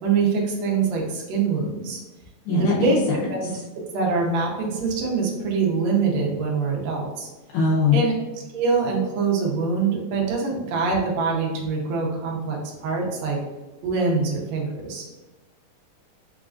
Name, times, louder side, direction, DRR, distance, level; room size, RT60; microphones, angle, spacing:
voice 1, 0.0-2.0 2.6-3.0 3.3-3.4 3.9-7.3 7.9-8.1 8.5-13.4 13.8-15.1, right 4 dB, 70° right, -2 dB, 1.7 m, -24 dB
voice 2, 2.5-2.9 7.5-8.1, left 4 dB, 75° left, -4 dB, 2.0 m, -20 dB
5.0 x 3.6 x 2.4 m, 1.1 s
omnidirectional pair, 4.0 m